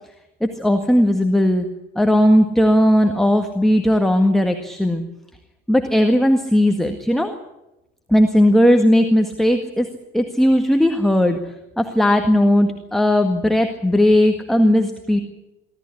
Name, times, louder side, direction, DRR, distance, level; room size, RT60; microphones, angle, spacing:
voice 1, 0.4-1.7 1.9-5.0 5.7-7.3 8.1-9.9 10.1-11.4 11.8-15.2, equal, ahead, 5 dB, 1.8 m, -17 dB
24.5 x 14.5 x 9.9 m, 0.94 s
figure-of-eight pair, 70°, 30 cm